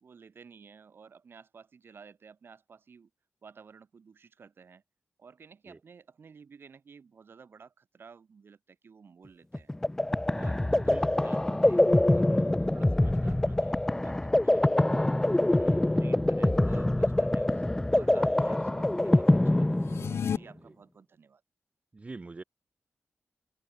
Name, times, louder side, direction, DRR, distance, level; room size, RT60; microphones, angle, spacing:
voice 1, 0.0-3.1 3.4-4.8 5.2-9.7 10.3-11.8 12.1-17.6 17.9-19.8 20.3-21.4, right 5 dB, 60° right, 2.4 m, -53 dB
sound 1, 9.5-20.4, left 1 dB, 10° left, 0.4 m, -25 dB
sound 2, 19.8-20.4, left 8 dB, 85° left, 0.4 m, -31 dB
voice 2, 21.9-22.4, right 3 dB, 30° right, 1.5 m, -43 dB
open air
wide cardioid pair, 120°, 4 cm